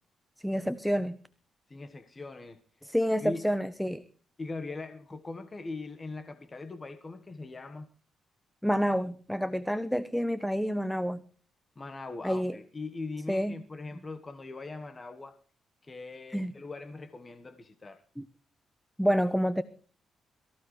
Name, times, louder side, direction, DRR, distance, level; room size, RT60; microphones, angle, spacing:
voice 1, 0.4-1.2 2.8-4.0 8.6-11.2 12.2-12.6 13.3-13.6 16.3-16.5 18.2-18.3 19.0-19.6, equal, ahead, 0.8 m, -28 dB
voice 2, 1.7-2.9 3.2-3.4 4.4-7.9 11.8-15.4 15.8-18.0, left 3 dB, 25° left, 1.2 m, -41 dB
23.0 x 15.0 x 3.2 m
cardioid pair, 115°, 0 cm